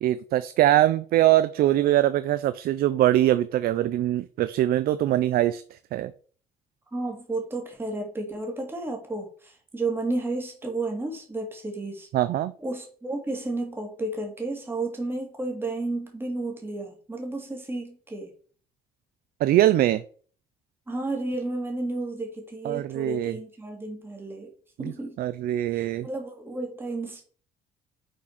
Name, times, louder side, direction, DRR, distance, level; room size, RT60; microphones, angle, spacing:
voice 1, 0.0-6.1 12.1-12.5 19.4-20.0 22.6-23.4 24.8-24.9 25.2-26.1, right 13 dB, 60° right, 13 dB, 0.4 m, -22 dB
voice 2, 6.9-12.1 12.6-18.3 20.9-24.5 24.8-25.2 25.7-27.3, right 2 dB, 15° right, 1 dB, 2.1 m, -32 dB
6.2 x 4.1 x 5.8 m, 0.43 s
cardioid pair, 110°, 17 cm